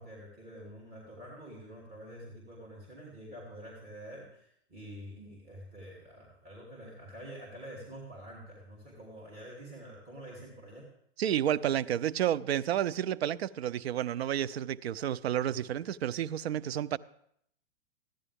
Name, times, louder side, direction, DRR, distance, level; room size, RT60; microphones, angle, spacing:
voice 1, 0.0-10.9, equal, 30° right, 2.9 m, -47 dB
voice 2, 11.2-17.0, right 11 dB, 85° right, 0.5 m, -30 dB
14.5 x 11.0 x 3.4 m
hypercardioid pair, 115°, 31 cm